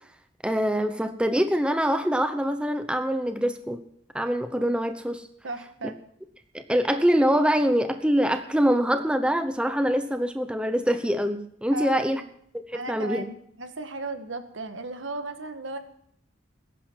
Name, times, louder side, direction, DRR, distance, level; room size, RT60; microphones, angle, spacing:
voice 1, 0.4-3.8 4.1-5.3 6.5-12.2 12.5-13.3, equal, 5° right, 7 dB, 0.9 m, -24 dB
voice 2, 5.4-6.0 11.7-12.0 12.7-13.3 13.6-15.8, right 2 dB, 80° right, 7 dB, 1.6 m, -35 dB
20.0 x 11.0 x 4.6 m, 0.67 s
head